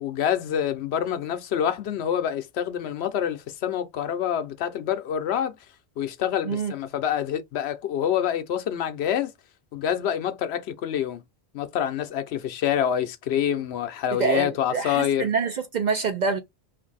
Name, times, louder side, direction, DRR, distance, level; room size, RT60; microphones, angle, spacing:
voice 1, 0.0-5.6 6.0-9.3 9.7-11.2 11.5-15.3, left 9 dB, 75° left, 0.8 m, -26 dB
voice 2, 14.1-16.4, right 5 dB, 55° right, 0.5 m, -26 dB
2.6 x 2.5 x 3.9 m
omnidirectional pair, 1.1 m